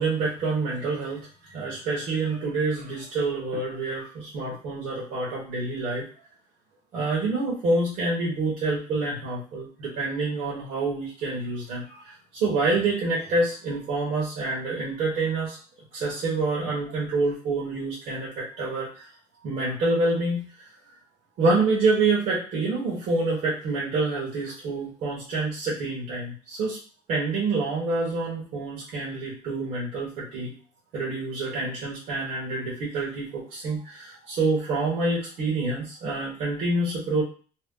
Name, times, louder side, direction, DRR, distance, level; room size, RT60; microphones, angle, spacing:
voice 1, 0.0-6.0 6.9-15.6 15.9-19.1 19.4-20.7 21.4-26.8 27.1-30.5 30.9-37.2, right 3 dB, 55° right, -6 dB, 1.1 m, -27 dB
2.8 x 2.1 x 3.6 m, 0.40 s
cardioid pair, 165°, 16 cm